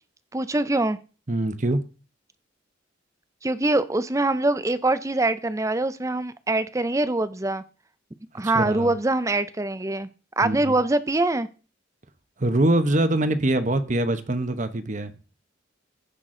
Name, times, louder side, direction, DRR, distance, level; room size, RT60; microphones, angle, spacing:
voice 1, 0.3-1.0 3.4-7.6 8.3-10.1 10.4-11.5, right 2 dB, 15° right, 0.5 m, -24 dB
voice 2, 1.3-1.8 8.5-8.9 10.4-10.7 12.4-15.1, right 1 dB, 40° right, 0.9 m, -23 dB
15.5 x 6.0 x 3.8 m
head